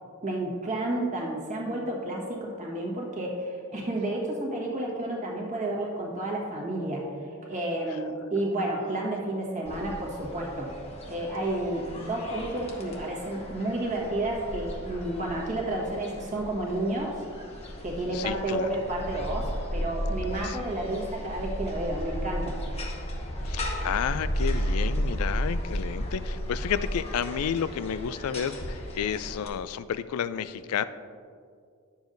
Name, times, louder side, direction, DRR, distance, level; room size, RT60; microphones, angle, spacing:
voice 1, 0.2-7.1 7.4-10.7 11.1-17.1 17.8-22.6, right 1 dB, 35° right, -2 dB, 1.4 m, -31 dB
sound 1, 9.7-29.5, equal, 30° left, 0.9 m, -34 dB
voice 2, 18.1-18.7 20.4-20.6 23.4-30.8, left 8 dB, 75° left, 15 dB, 0.3 m, -31 dB
10.5 x 7.1 x 2.6 m, 2.2 s
head